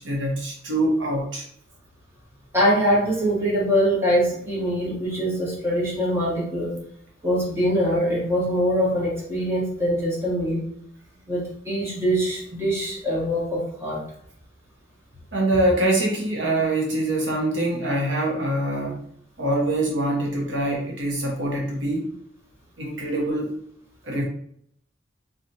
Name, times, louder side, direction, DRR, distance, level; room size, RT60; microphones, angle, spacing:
voice 1, 0.0-1.4 15.3-19.0 19.4-22.1 22.8-23.5 24.0-24.2, right 1 dB, 75° right, -2 dB, 1.0 m, -24 dB
voice 2, 2.5-6.7 7.2-10.6 11.3-14.0, equal, 15° right, -6 dB, 1.3 m, -23 dB
3.9 x 2.9 x 2.9 m, 0.67 s
head